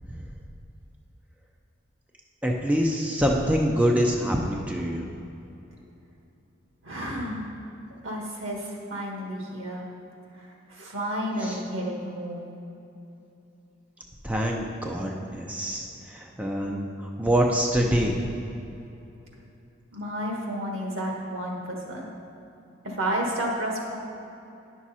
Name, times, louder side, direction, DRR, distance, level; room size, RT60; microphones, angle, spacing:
voice 1, 2.4-5.0 11.4-11.6 14.2-18.2, equal, 5° right, 0 dB, 0.5 m, -25 dB
voice 2, 6.8-7.5 8.0-9.9 10.4-12.5 19.9-22.1 22.8-24.0, right 1 dB, 85° right, 0 dB, 1.5 m, -31 dB
9.8 x 6.2 x 4.2 m, 2.8 s
head